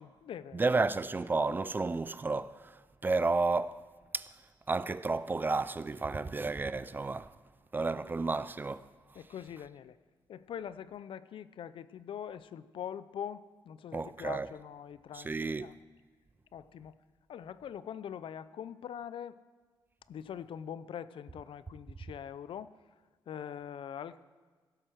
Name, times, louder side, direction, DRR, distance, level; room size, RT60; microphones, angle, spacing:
voice 1, 0.0-0.6 9.2-10.0 10.3-15.7 16.5-17.0 17.3-19.4 20.1-22.7 23.3-24.2, left 9 dB, 85° left, 0.5 m, -43 dB
voice 2, 0.5-2.8 3.0-3.8 4.1-4.3 4.7-7.3 7.7-8.9 13.9-14.5 15.1-15.8, right 3 dB, 25° right, 0.3 m, -31 dB
16.5 x 7.7 x 6.4 m
wide cardioid pair, 145°, 9 cm